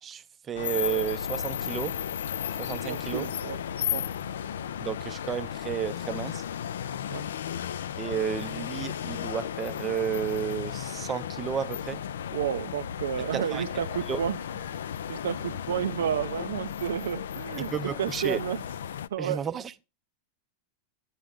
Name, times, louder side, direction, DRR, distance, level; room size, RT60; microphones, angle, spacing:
voice 1, 0.0-2.0 2.6-3.3 4.8-6.4 8.0-12.0 13.3-13.6 14.1-14.2 17.7-18.4 19.2-19.8, right 8 dB, 25° right, 0.5 m, -32 dB
sound 1, 0.5-19.1, left 9 dB, 85° left, 0.4 m, -34 dB
voice 2, 2.9-3.6 3.9-4.1 7.1-7.3 12.3-14.4 15.1-17.7 18.0-18.6 19.1-19.5, right 9 dB, 85° right, 0.4 m, -31 dB
10.0 x 8.0 x 3.6 m
hypercardioid pair, 125°, 0 cm